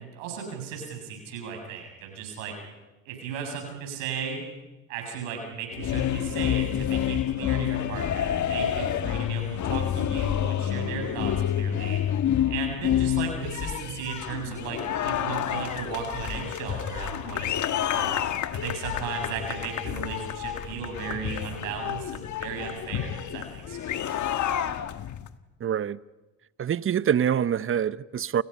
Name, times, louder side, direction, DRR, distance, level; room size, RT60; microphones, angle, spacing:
voice 1, 0.0-2.5 3.1-4.4 4.9-12.0 12.5-18.2 18.5-24.2, right 6 dB, 80° right, 7.6 m, -36 dB
sound 1, 5.7-25.3, left 10 dB, 50° left, 1.6 m, -29 dB
voice 2, 25.6-26.0 26.6-28.4, right 8 dB, 35° right, 0.9 m, -25 dB
30.0 x 29.5 x 5.6 m
hypercardioid pair, 65°, 38 cm